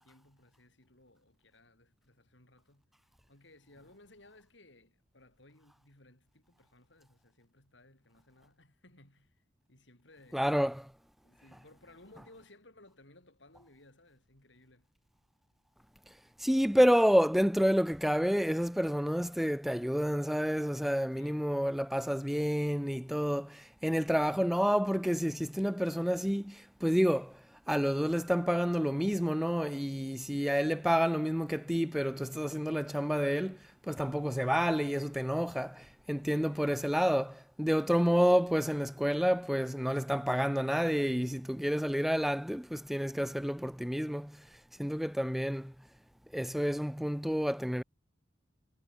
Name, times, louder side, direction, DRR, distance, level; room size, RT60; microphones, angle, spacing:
voice 1, 0.0-2.9 3.3-10.5 11.2-14.9 21.1-21.5 36.3-36.9, left 2 dB, 70° left, 6.9 m, -60 dB
voice 2, 10.3-10.9 16.4-27.4 27.7-33.6 33.9-44.4 44.8-45.7 46.3-47.8, equal, ahead, 0.6 m, -29 dB
head